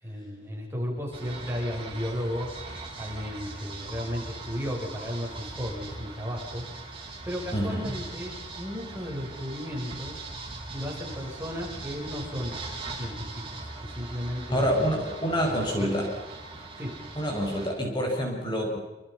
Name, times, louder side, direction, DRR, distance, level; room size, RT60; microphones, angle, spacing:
voice 1, 0.0-6.7 6.9-10.2 10.7-12.6 12.9-14.9 15.2-16.0 16.8-16.9, equal, 15° right, -2 dB, 7.8 m, -35 dB
sound 1, 1.1-17.7, right 2 dB, 30° right, 7.5 m, -40 dB
voice 2, 7.5-7.9 14.5-16.1 17.2-18.8, equal, 25° left, 0 dB, 6.4 m, -27 dB
28.0 x 27.5 x 5.8 m, 1.1 s
head